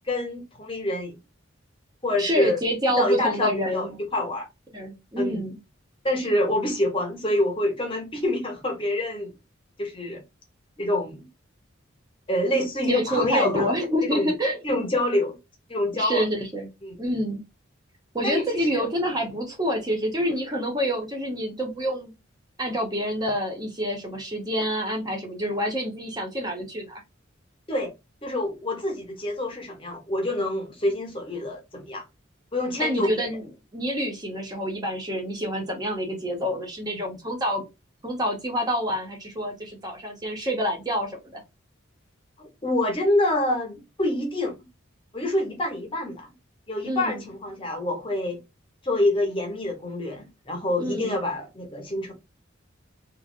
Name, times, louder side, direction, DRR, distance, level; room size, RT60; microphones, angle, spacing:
voice 1, 0.1-1.2 2.0-2.6 2.9-4.5 5.2-5.4 6.0-9.3 9.8-10.2 10.8-11.3 12.3-14.3 14.6-15.4 15.7-16.2 16.8-16.9 18.2-18.8 27.7-27.9 28.2-32.0 32.5-33.3 42.4-44.6 45.1-46.3 46.7-48.4 48.8-52.1, left 1 dB, 25° left, 0.8 m, -26 dB
voice 2, 2.1-3.9 4.7-5.6 12.9-14.6 15.9-16.7 17.0-17.4 18.1-22.1 22.6-27.0 32.7-33.5 33.7-37.6 38.0-41.4 46.8-47.2 50.8-51.2, equal, 20° right, 0.8 m, -27 dB
3.1 x 2.5 x 2.3 m
head